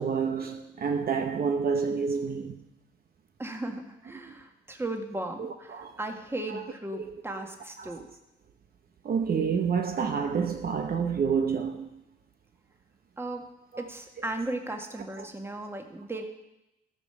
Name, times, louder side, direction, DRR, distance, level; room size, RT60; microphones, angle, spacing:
voice 1, 0.0-2.6 5.4-6.0 6.5-6.6 7.1-7.2 7.8-8.0 9.0-11.9 13.7-13.8 15.2-15.3, right 6 dB, 50° right, 0.9 m, -29 dB
voice 2, 3.4-8.1 13.2-13.4 13.8-16.2, right 2 dB, 10° right, 1.6 m, -36 dB
14.5 x 5.3 x 7.0 m
cardioid pair, 90°, 20 cm